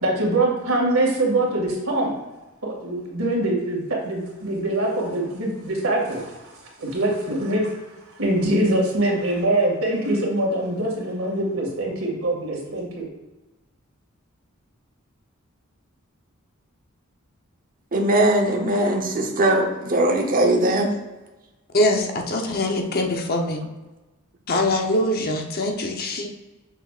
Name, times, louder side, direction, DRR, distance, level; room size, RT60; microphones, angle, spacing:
voice 1, 0.0-2.1 2.6-6.5 6.8-7.7 8.2-13.1, right 1 dB, 85° right, 2.2 m, -23 dB
voice 2, 17.9-20.9, right 1 dB, 40° right, 1.0 m, -20 dB
voice 3, 21.7-23.6 24.5-26.3, left 1 dB, 50° left, 0.9 m, -23 dB
7.1 x 6.6 x 2.5 m
head